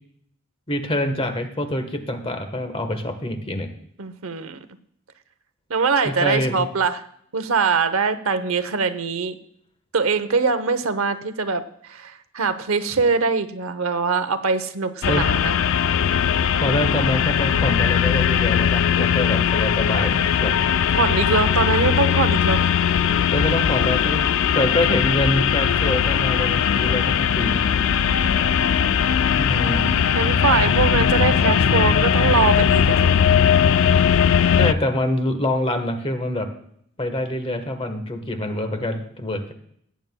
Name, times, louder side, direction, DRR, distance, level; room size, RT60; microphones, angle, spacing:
voice 1, 0.7-3.7 6.0-6.7 15.1-15.3 16.6-20.6 23.3-27.6 29.3-29.9 34.5-36.5 37.0-39.5, left 1 dB, 25° left, 7 dB, 1.2 m, -25 dB
voice 2, 4.0-4.6 5.7-7.0 7.3-9.4 9.9-15.6 20.9-22.7 28.1-29.0 30.1-33.2, right 4 dB, 70° right, 12 dB, 0.8 m, -23 dB
sound 1, 15.0-34.7, left 8 dB, 65° left, 0.4 m, -19 dB
16.5 x 9.4 x 2.3 m, 0.68 s
head